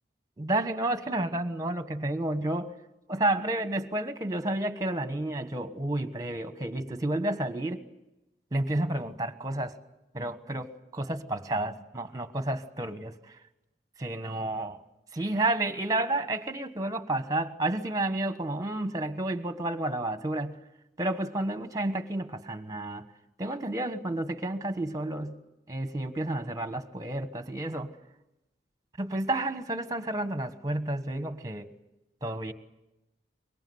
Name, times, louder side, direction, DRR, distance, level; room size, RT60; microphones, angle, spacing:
voice 1, 0.4-2.7 3.1-7.8 8.5-9.8 10.1-13.3 14.0-14.8 15.1-20.6 21.0-23.1 23.4-25.4 25.7-27.9 29.0-31.7 32.2-32.5, right 1 dB, 20° right, 10 dB, 1.4 m, -31 dB
24.0 x 22.5 x 8.0 m, 0.95 s
head